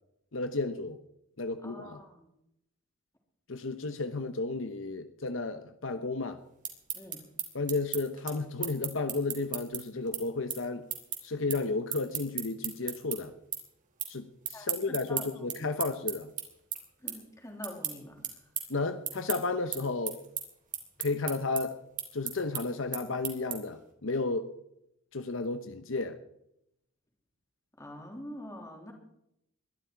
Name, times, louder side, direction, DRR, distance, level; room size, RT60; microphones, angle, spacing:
voice 1, 0.3-1.0 1.4-2.0 3.5-6.4 7.5-10.9 11.2-13.3 14.1-16.3 18.7-20.2 21.0-21.8 22.1-24.5 25.1-26.2, left 3 dB, 70° left, 1.0 m, -33 dB
voice 2, 1.6-2.3 6.9-7.2 14.5-15.9 17.0-18.4 27.8-28.9, left 1 dB, 15° left, 3.4 m, -45 dB
sound 1, 6.4-13.2 13.5-14.1 14.4-23.8, right 10 dB, 40° right, 3.1 m, -36 dB
21.5 x 12.0 x 4.7 m
head